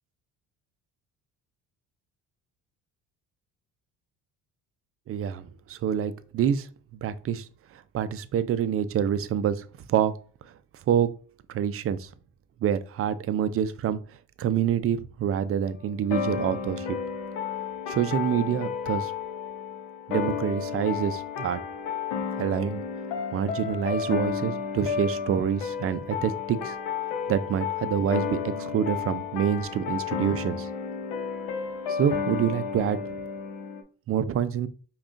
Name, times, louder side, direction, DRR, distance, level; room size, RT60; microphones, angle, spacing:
voice 1, 5.1-10.1 10.4-10.5 10.9-11.2 11.5-12.1 12.6-17.0 17.9-19.1 20.1-21.6 22.4-22.8 23.3-26.7 27.3-30.7 31.9-33.0 34.1-34.7, right 8 dB, 40° right, 0.4 m, -27 dB
sound 1, 16.1-33.8, left 7 dB, 90° left, 0.8 m, -32 dB
5.5 x 2.4 x 2.5 m
supercardioid pair, 85°, 36 cm